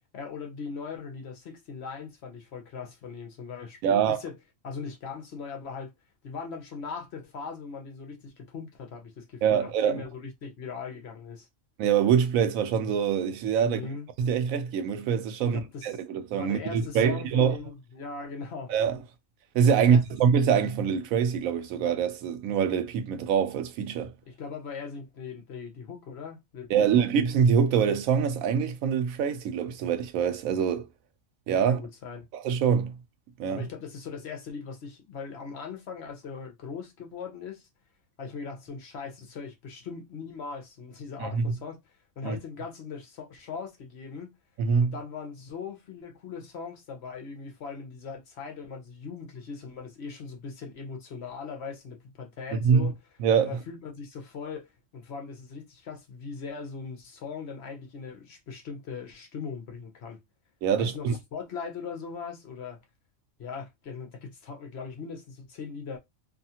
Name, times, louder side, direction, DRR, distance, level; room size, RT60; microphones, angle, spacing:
voice 1, 0.1-4.4 4.6-5.9 6.2-11.5 13.6-14.1 15.4-15.9 16.4-18.7 19.8-20.0 24.3-26.9 31.7-32.3 33.5-37.7 38.2-41.8 42.2-44.4 44.8-53.0 53.4-60.2 60.8-62.8 63.4-66.0, left 5 dB, 60° left, 0.9 m, -40 dB
voice 2, 3.8-4.2 9.4-10.0 11.8-13.8 14.2-17.6 18.7-19.0 19.5-24.1 26.7-30.9 31.5-31.8 32.3-33.0 33.4-33.7 41.2-41.4 42.2-42.4 44.6-45.0 52.6-52.9 53.2-53.6 60.6-61.2, right 7 dB, 90° right, 1.0 m, -24 dB
2.7 x 2.3 x 2.7 m
omnidirectional pair, 1.4 m